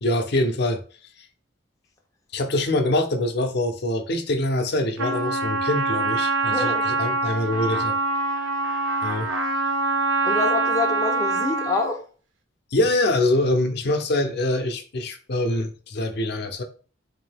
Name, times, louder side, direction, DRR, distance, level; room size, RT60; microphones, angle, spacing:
voice 1, 0.0-0.8 1.2-1.3 2.3-7.9 9.0-9.3 12.7-16.6, left 1 dB, 60° left, 0.6 m, -24 dB
Trumpet, 5.0-11.9, right 3 dB, 90° right, 0.6 m, -24 dB
voice 2, 6.5-6.8 10.2-12.0, left 3 dB, 20° left, 0.5 m, -26 dB
3.7 x 2.7 x 3.4 m
head